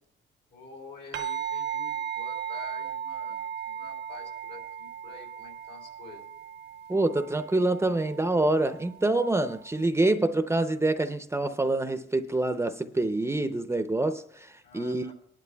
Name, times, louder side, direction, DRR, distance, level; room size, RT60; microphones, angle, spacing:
voice 1, 0.5-6.3 14.6-15.1, left 3 dB, 75° left, 3.5 m, -48 dB
sound 1, 1.1-9.8, right 8 dB, 75° right, 0.8 m, -37 dB
voice 2, 6.9-15.0, right 2 dB, 15° right, 0.6 m, -26 dB
24.0 x 11.0 x 2.3 m
cardioid pair, 90°, 20 cm